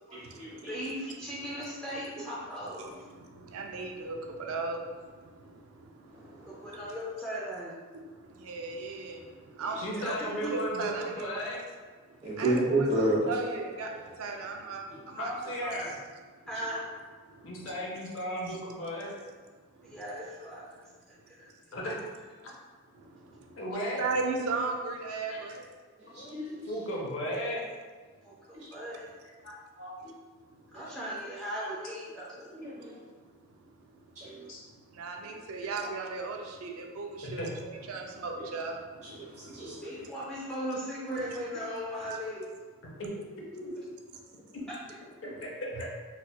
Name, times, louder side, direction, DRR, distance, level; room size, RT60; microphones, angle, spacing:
voice 1, 0.1-0.9 6.1-6.8 9.6-9.9 12.2-13.3 14.9-15.0 16.5-16.6 26.0-26.7 28.5-28.7 30.0-30.1 30.7-31.0 32.3-33.1 34.1-34.5 38.4-38.5 39.0-40.0 41.5-41.6, right 1 dB, 30° right, -7 dB, 0.9 m, -33 dB
voice 2, 0.7-3.0 6.5-7.7 10.4-10.6 16.5-16.8 19.8-20.9 21.3-21.5 28.2-28.3 28.7-29.1 30.7-32.3 39.8-42.4, equal, 5° left, -8 dB, 0.3 m, -37 dB
voice 3, 3.5-4.8 8.4-9.2 9.6-11.2 12.4-12.9 13.3-13.9 14.2-15.3 15.6-15.9 24.0-25.6 35.0-38.7, right 3 dB, 80° right, 2 dB, 0.4 m, -35 dB
voice 4, 9.8-11.6 15.2-16.0 17.4-19.1 21.7-22.0 22.4-22.5 23.6-24.1 25.3-25.4 26.1-26.3 26.7-27.7 29.1-29.9 34.5-34.6 35.6-35.7 37.2-37.5 41.5-41.6 43.6-43.9 45.4-45.9, equal, 60° left, -3 dB, 0.7 m, -36 dB
4.1 x 2.4 x 2.2 m, 1.5 s
head